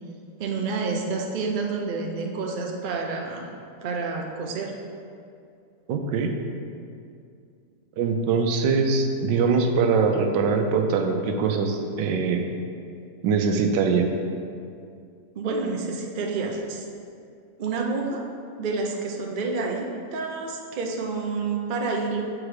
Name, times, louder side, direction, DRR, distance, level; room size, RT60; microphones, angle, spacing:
voice 1, 0.4-3.5 3.8-4.7 15.3-16.8 17.6-18.3 18.6-22.2, right 4 dB, 65° right, 1 dB, 0.5 m, -29 dB
voice 2, 5.9-6.3 8.0-12.4 13.2-14.1, right 5 dB, 85° right, 5 dB, 1.3 m, -22 dB
7.4 x 4.9 x 4.8 m, 2.4 s
omnidirectional pair, 1.9 m